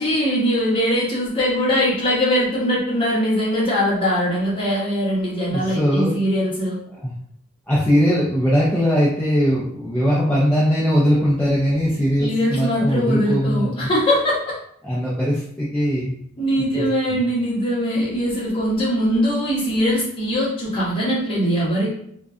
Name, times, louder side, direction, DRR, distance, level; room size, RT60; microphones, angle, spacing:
voice 1, 0.0-6.8 12.2-14.5 16.4-21.9, equal, 25° left, -7 dB, 0.8 m, -21 dB
voice 2, 5.5-6.1 7.7-13.9 14.8-16.1 16.8-16.9 17.1-17.2, equal, 5° left, -9 dB, 0.4 m, -20 dB
2.5 x 2.2 x 2.3 m, 0.68 s
head